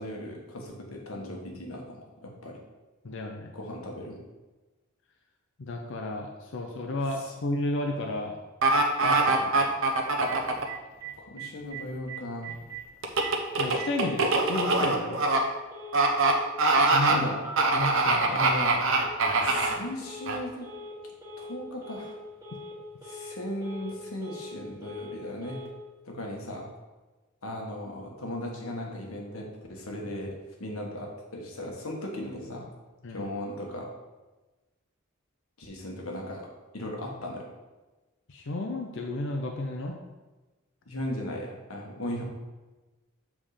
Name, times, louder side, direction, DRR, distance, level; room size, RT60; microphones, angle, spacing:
voice 1, 0.0-2.6 3.5-4.2 7.2-7.3 11.2-12.6 17.1-17.4 18.3-18.9 19.4-20.7 21.4-22.2 23.0-25.6 26.0-26.7 27.4-30.3 30.6-32.7 33.1-33.9 35.6-36.5 36.7-37.5 40.9-42.2, left 1 dB, 90° left, 0 dB, 1.4 m, -37 dB
voice 2, 3.0-3.5 5.6-8.4 9.0-9.8 13.6-15.2 16.9-17.3 17.7-18.4 33.0-33.3 38.3-40.0, left 2 dB, 65° left, 3 dB, 0.6 m, -33 dB
sound 1, 8.6-10.7 13.0-15.4 15.9-16.3 16.6-17.2 17.6-19.8 20.3-20.4, right 3 dB, 70° right, 0.9 m, -23 dB
Telephone, 10.3-10.4 10.7-10.8 11.0-11.1 11.4-11.8 12.1-12.2 12.4-12.8 13.2-13.3 13.8-14.4 15.2-15.4 15.7-16.4 17.0-19.7 20.0-20.3 20.6-20.9 21.2-21.5 21.8-22.1 22.4-22.7 23.0-23.3 23.6-24.5 24.8-25.2 25.4-25.7, right 1 dB, 15° right, 1.7 m, -40 dB
7.4 x 3.6 x 5.0 m, 1.2 s
head